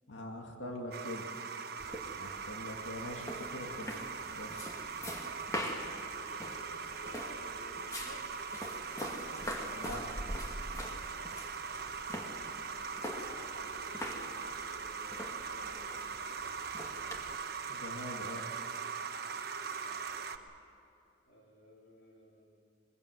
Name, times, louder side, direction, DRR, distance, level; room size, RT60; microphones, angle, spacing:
voice 1, 0.1-1.3 2.2-3.9 4.4-4.5 9.7-10.0 17.7-18.4, left 1 dB, 75° left, 2 dB, 2.1 m, -43 dB
sound 1, 0.9-20.4, right 5 dB, 50° right, 1.1 m, -41 dB
sound 2, 1.8-17.4, equal, 15° left, 2.0 m, -44 dB
voice 2, 6.3-8.4 11.6-11.8 13.1-16.4 19.6-20.2 21.2-22.6, left 1 dB, 50° left, -2 dB, 3.8 m, -57 dB
22.0 x 22.0 x 7.7 m, 2.7 s
head